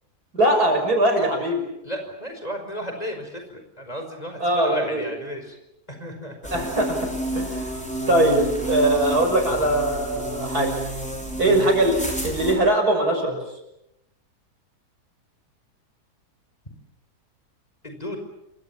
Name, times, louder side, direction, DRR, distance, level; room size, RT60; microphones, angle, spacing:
voice 1, 0.3-1.7 4.4-5.1 6.5-7.8 8.1-10.8 11.4-12.0 12.2-13.4, right 1 dB, 65° right, 4 dB, 6.6 m, -21 dB
voice 2, 1.8-5.6 5.9-6.3 6.6-6.7 17.8-18.2, equal, 25° left, 5 dB, 5.2 m, -33 dB
sound 1, 6.4-12.5, right 1 dB, 5° left, 6.0 m, -30 dB
29.0 x 25.0 x 7.2 m, 0.83 s
omnidirectional pair, 1.7 m